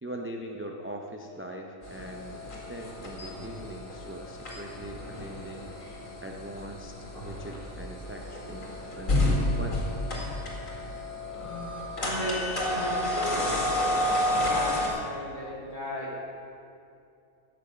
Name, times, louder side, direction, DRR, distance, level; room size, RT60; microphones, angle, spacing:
voice 1, 0.0-5.7 6.2-9.8, right 1 dB, 15° right, 1 dB, 0.4 m, -41 dB
sound 1, 1.8-14.9, left 1 dB, 85° left, 2.6 m, -31 dB
voice 2, 12.0-13.5 14.4-16.2, equal, 35° left, -6 dB, 2.9 m, -35 dB
16.0 x 6.3 x 6.3 m, 2.5 s
omnidirectional pair, 1.4 m